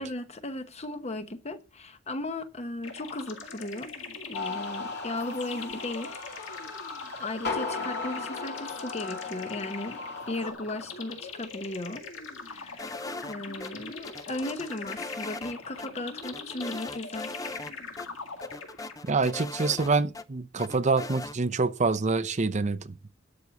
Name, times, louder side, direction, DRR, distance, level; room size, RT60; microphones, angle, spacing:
voice 1, 0.0-3.9 4.2-6.2 6.5-6.8 7.2-12.1 12.4-12.9 13.2-17.4, left 2 dB, 35° left, 1.0 m, -36 dB
sound 1, 2.8-19.2, left 4 dB, 75° left, 2.0 m, -42 dB
sound 2, 4.3-10.5, left 3 dB, 55° left, 3.0 m, -36 dB
sound 3, 12.8-13.7 14.0-15.5 15.8-15.9 16.2-17.7 18.0-18.1 18.4-20.2 20.6-21.4, left 2 dB, 20° left, 0.6 m, -39 dB
voice 2, 19.1-22.8, right 4 dB, 35° right, 0.7 m, -26 dB
12.0 x 5.6 x 8.1 m
head